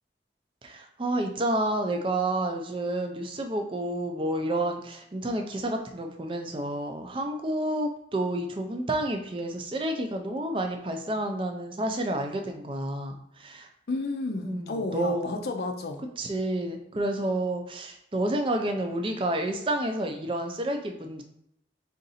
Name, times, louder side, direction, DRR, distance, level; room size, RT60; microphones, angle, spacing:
voice 1, 0.6-13.7 14.4-15.5 16.2-21.2, right 1 dB, 30° right, 4 dB, 0.4 m, -30 dB
voice 2, 13.9-16.0, left 3 dB, 60° left, 4 dB, 0.5 m, -31 dB
3.8 x 2.5 x 4.1 m, 0.78 s
head